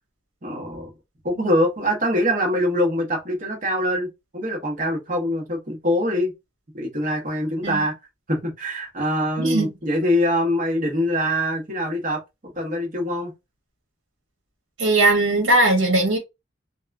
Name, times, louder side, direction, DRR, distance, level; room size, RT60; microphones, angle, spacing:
voice 1, 0.4-0.9 1.2-6.3 6.7-7.9 8.3-13.3, equal, 40° right, 1.0 m, -24 dB
voice 2, 9.4-9.7 14.8-16.2, right 2 dB, 75° right, 1.2 m, -19 dB
2.8 x 2.2 x 2.4 m
head